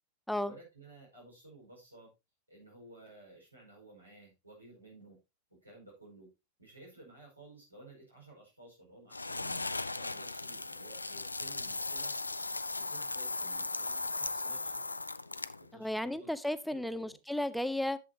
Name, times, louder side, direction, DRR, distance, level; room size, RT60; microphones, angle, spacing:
voice 1, 0.4-2.1 2.5-5.2 5.5-6.3 6.6-9.7 9.9-12.1 12.8-14.8 15.6-16.3 16.7-17.2, right 2 dB, 85° right, 5.0 m, -54 dB
sound 1, 9.1-15.7, left 3 dB, 80° left, 0.4 m, -37 dB
voice 2, 15.8-18.0, left 1 dB, ahead, 0.5 m, -34 dB
11.0 x 7.6 x 2.9 m
figure-of-eight pair, 90°, 0 cm